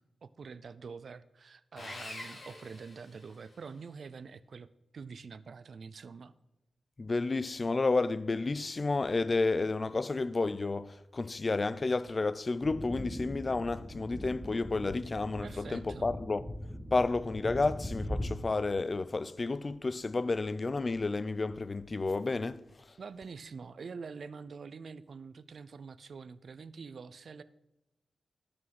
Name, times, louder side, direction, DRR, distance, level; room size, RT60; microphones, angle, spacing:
voice 1, 0.2-4.7 4.9-6.3 15.4-16.1 23.0-27.4, right 5 dB, 65° right, 0.5 m, -46 dB
Sawing, 1.8-3.7, left 2 dB, 60° left, 3.3 m, -45 dB
voice 2, 7.0-16.4 16.9-22.6, left 3 dB, 40° left, 0.5 m, -31 dB
sound 1, 12.6-18.4, equal, 15° right, 2.4 m, -40 dB
12.5 x 6.1 x 6.0 m
cardioid pair, 65°, 0 cm